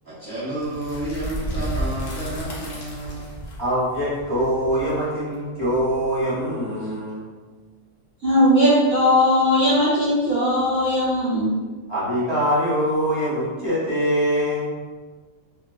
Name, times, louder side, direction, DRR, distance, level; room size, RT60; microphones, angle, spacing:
voice 1, 0.0-3.2, right 1 dB, 30° right, -13 dB, 0.4 m, -30 dB
sound 1, 0.6-6.4, equal, 55° left, 0.7 m, -32 dB
voice 2, 3.6-7.2 11.9-14.7, equal, 20° left, -11 dB, 0.9 m, -23 dB
voice 3, 8.2-11.5, left 1 dB, 50° right, -9 dB, 1.0 m, -18 dB
2.5 x 2.2 x 2.4 m, 1.4 s
omnidirectional pair, 1.5 m